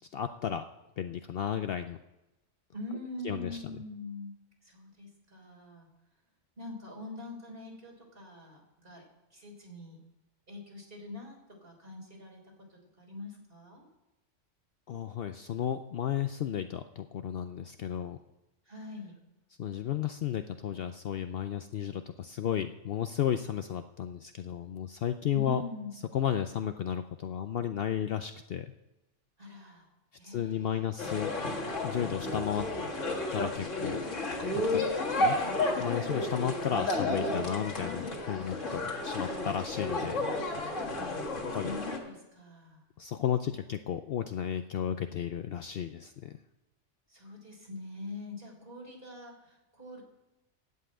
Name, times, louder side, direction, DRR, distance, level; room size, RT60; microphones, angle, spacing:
voice 1, 0.1-0.6 1.0-2.0 3.2-3.6 14.9-18.2 19.6-25.6 26.1-28.7 30.2-31.3 31.8-32.7 33.3-34.0 34.5-34.8 35.2-35.4 35.8-40.3 41.5-41.7 43.0-46.4, left 9 dB, 60° left, 9 dB, 0.7 m, -33 dB
voice 2, 2.7-5.9 6.6-9.1 9.3-10.0 10.5-13.8 18.7-19.2 25.3-26.0 29.4-29.9 30.2-31.0 35.1-35.5 41.3-42.8 47.1-50.0, left 2 dB, 45° right, 0 dB, 3.8 m, -44 dB
sound 1, 31.0-42.0, left 2 dB, 80° left, 2.1 m, -32 dB
16.0 x 5.7 x 8.7 m, 0.98 s
omnidirectional pair, 1.3 m